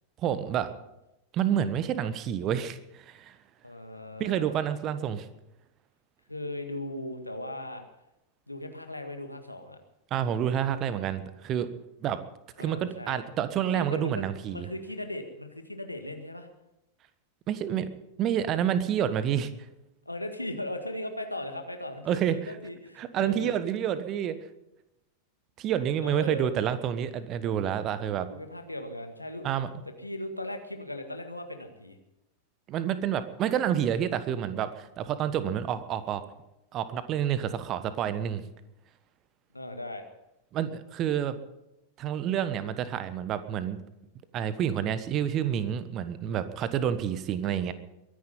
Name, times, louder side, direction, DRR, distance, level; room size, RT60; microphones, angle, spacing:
voice 1, 0.2-0.7 1.3-3.4 4.2-5.3 10.1-11.7 12.0-12.2 12.6-14.7 17.5-17.9 18.2-19.5 22.0-22.6 23.0-24.4 25.6-28.3 29.4-29.7 32.7-36.2 36.7-38.4 40.5-41.4 42.0-43.8 44.3-47.7, right 9 dB, 35° right, 13 dB, 1.3 m, -29 dB
voice 2, 3.6-4.6 6.3-7.8 8.5-9.8 12.6-13.2 13.7-16.5 20.1-23.6 26.0-26.5 28.3-29.5 30.0-32.0 39.5-40.1, left 1 dB, 85° left, 6 dB, 1.9 m, -38 dB
22.5 x 10.5 x 5.6 m, 0.90 s
figure-of-eight pair, 90°, 0 cm